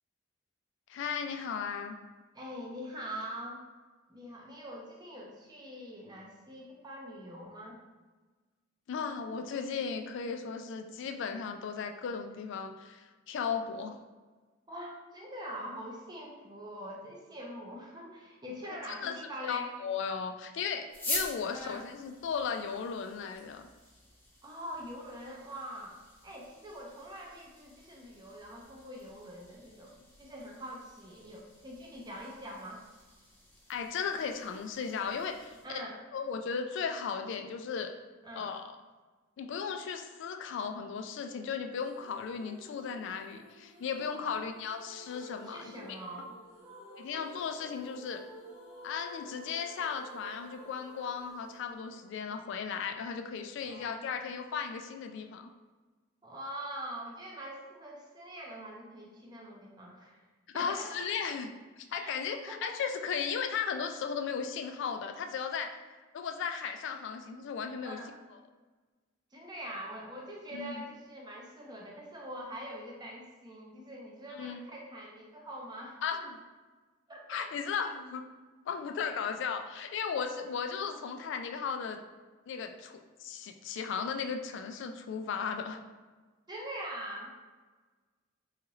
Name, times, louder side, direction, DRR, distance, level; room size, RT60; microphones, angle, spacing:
voice 1, 0.9-2.0 8.9-14.0 18.7-19.1 19.4-23.7 33.7-35.8 36.1-37.9 38.4-38.7 39.4-46.0 47.0-48.2 48.8-55.5 60.5-61.5 61.8-65.7 66.1-68.0 70.5-70.8 74.3-74.7 76.0-76.4 77.3-78.2 78.7-82.0 82.5-85.8, left 6 dB, 65° left, 5 dB, 0.3 m, -36 dB
voice 2, 2.3-3.6 4.1-7.8 14.7-19.7 21.5-21.8 24.4-26.0 26.2-32.8 35.6-36.0 38.2-38.5 44.1-44.6 45.4-46.4 53.6-54.1 56.2-60.2 60.5-61.0 61.9-62.1 62.5-62.7 67.8-68.1 69.3-76.3 77.1-77.5 79.2-79.3 86.5-87.3, equal, 20° right, -2 dB, 0.6 m, -44 dB
sound 1, 20.9-35.6, left 2 dB, 10° left, 0.8 m, -46 dB
sound 2, 41.8-52.7, equal, 80° right, 1.3 m, -52 dB
3.8 x 2.4 x 3.0 m, 1.3 s
head